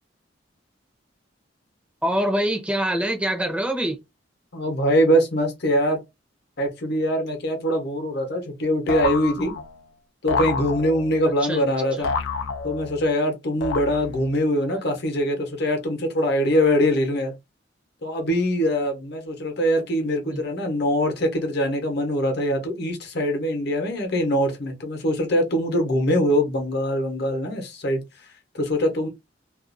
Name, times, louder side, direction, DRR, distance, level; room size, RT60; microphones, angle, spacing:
voice 1, 2.0-4.0 11.5-11.6 14.7-14.8 20.3-20.4, right 1 dB, 5° right, 0.6 m, -24 dB
voice 2, 4.5-6.0 6.6-9.5 10.2-12.1 12.6-17.3 18.0-29.1, equal, 60° left, 0.9 m, -23 dB
sound 1, 8.9-9.8 10.3-11.2 12.0-13.1 13.6-14.3, left 4 dB, 85° left, 0.4 m, -28 dB
2.5 x 2.3 x 2.5 m
head